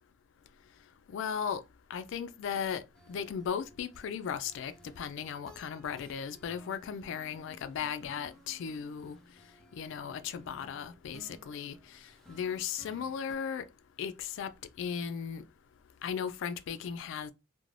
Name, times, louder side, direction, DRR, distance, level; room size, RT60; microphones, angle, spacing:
voice 1, 1.1-1.6 1.9-2.8 3.1-9.2 9.8-11.8 12.3-13.6 14.0-14.5 14.8-15.4 16.0-17.3, left 7 dB, 65° left, 0.3 m, -36 dB
sound 1, 2.9-13.4, equal, ahead, 0.5 m, -57 dB
2.5 x 2.1 x 3.1 m
head